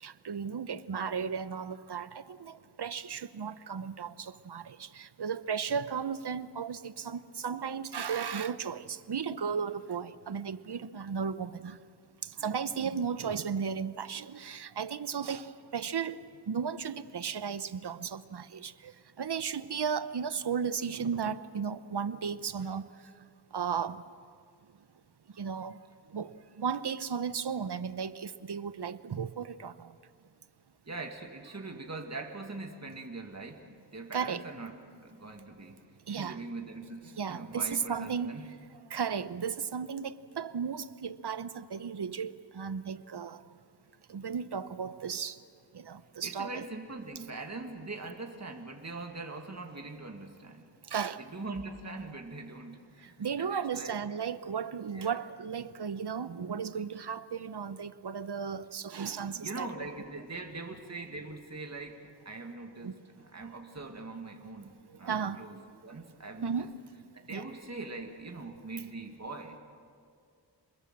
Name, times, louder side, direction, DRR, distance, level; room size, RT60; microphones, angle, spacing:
voice 1, 0.0-11.8 12.2-16.2 16.5-18.9 19.2-22.9 23.5-24.0 25.4-25.8 26.1-29.9 34.1-34.4 36.1-36.4 37.2-38.3 38.9-43.4 44.1-45.4 45.7-46.7 50.9-51.2 53.2-59.7 62.8-62.9 65.0-65.4 66.4-66.7 67.3-67.5, right 6 dB, 70° right, 0.9 m, -35 dB
voice 2, 30.9-34.7 35.0-35.8 36.1-38.5 46.2-50.7 51.2-54.0 54.9-55.2 59.4-65.6 65.8-66.7 67.1-69.6, right 3 dB, 40° right, 2.1 m, -42 dB
28.0 x 21.0 x 7.5 m
wide cardioid pair, 55°, 42 cm